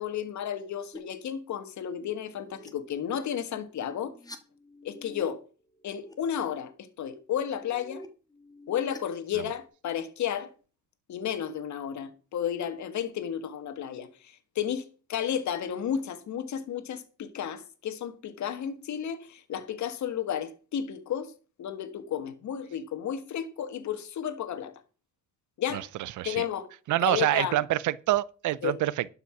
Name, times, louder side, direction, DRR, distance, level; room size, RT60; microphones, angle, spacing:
voice 1, 0.0-4.1 4.8-5.4 5.8-8.0 8.7-10.5 11.1-21.3 21.6-24.7 25.6-25.9 26.2-26.7 27.0-27.6 28.6-28.7, left 9 dB, 70° left, 1.6 m, -32 dB
sound 1, 0.9-1.0 2.0-2.7 3.9-5.2 5.6-6.1 7.3-9.7, left 1 dB, 15° left, 1.5 m, -48 dB
voice 2, 25.7-26.4 26.9-29.1, right 15 dB, 75° right, 0.6 m, -27 dB
12.0 x 5.8 x 5.8 m
cardioid pair, 90°, 30 cm